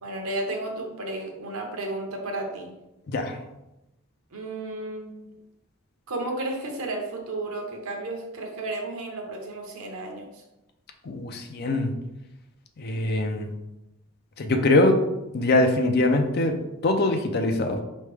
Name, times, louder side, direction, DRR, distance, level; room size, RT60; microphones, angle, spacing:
voice 1, 0.0-2.7 4.3-5.3 6.1-10.4, right 2 dB, 75° right, 2 dB, 0.9 m, -33 dB
voice 2, 11.0-11.9 12.8-13.5 14.4-15.0 15.3-16.6 16.8-17.8, left 2 dB, 45° left, 5 dB, 0.5 m, -22 dB
4.5 x 3.2 x 3.4 m, 0.94 s
head